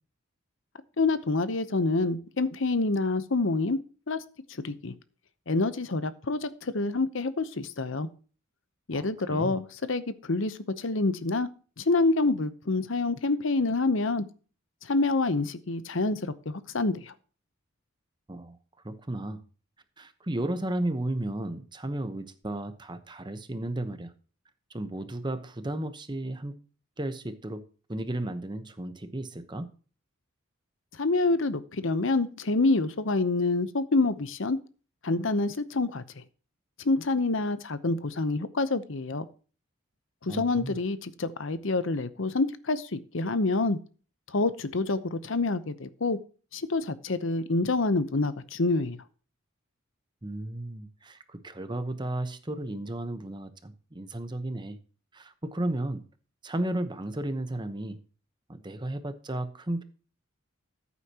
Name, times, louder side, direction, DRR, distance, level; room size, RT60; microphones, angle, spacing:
voice 1, 1.0-3.8 4.1-4.2 4.6-4.9 5.5-8.1 8.9-11.5 11.8-14.2 14.8-17.1 31.0-34.6 35.0-36.0 36.8-39.3 40.2-43.8 44.3-46.2 46.5-49.0, left 3 dB, 65° left, 14 dB, 0.8 m, -27 dB
voice 2, 8.9-9.6 18.3-18.6 18.8-19.4 20.0-24.1 24.7-26.6 27.0-27.6 27.9-29.7 40.3-40.8 50.2-54.8 55.1-56.0 56.4-58.0 58.5-59.8, right 1 dB, 20° right, 10 dB, 0.9 m, -34 dB
14.5 x 8.3 x 2.9 m, 0.37 s
head